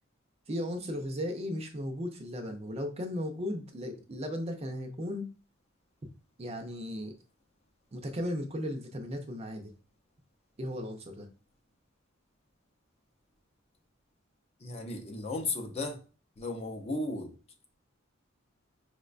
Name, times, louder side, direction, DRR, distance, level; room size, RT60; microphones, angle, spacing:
voice 1, 0.5-5.3 6.4-7.1 7.9-9.7 10.6-11.3, equal, 30° right, 4 dB, 0.5 m, -36 dB
voice 2, 14.6-16.0 16.4-17.4, left 2 dB, 30° left, 3 dB, 0.5 m, -35 dB
4.6 x 2.1 x 2.4 m, 0.35 s
head